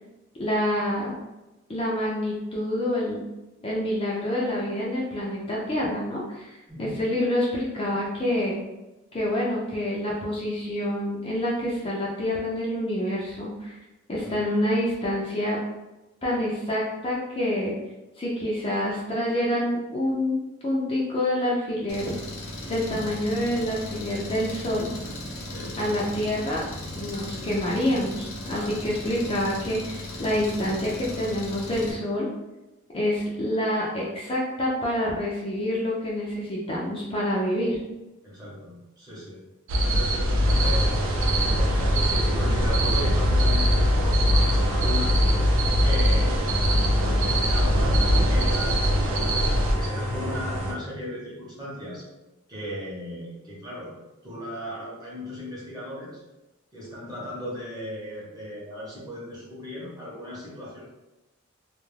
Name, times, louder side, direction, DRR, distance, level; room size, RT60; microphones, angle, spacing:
voice 1, 0.4-1.2 1.7-3.2 3.6-6.5 6.8-8.6 9.1-13.8 14.1-15.6 16.2-17.7 18.2-20.4 20.6-22.1 22.6-24.9 25.8-26.6 26.9-32.3 32.9-37.8, left 1 dB, 25° left, -5 dB, 0.4 m, -27 dB
voice 2, 6.7-7.0 14.2-14.4 22.9-23.1 25.4-25.8 28.5-28.7 38.2-39.4 39.8-45.1 45.8-52.1 52.5-53.9 54.2-56.2 56.7-60.9, equal, 20° right, -6 dB, 0.7 m, -36 dB
Engine, 21.9-31.9, left 1 dB, 65° left, 0.7 m, -37 dB
sound 1, 39.7-49.7, equal, 60° right, 0.4 m, -22 dB
sound 2, 40.4-50.7, equal, 90° right, 0.7 m, -30 dB
2.3 x 2.1 x 3.1 m, 1.0 s
head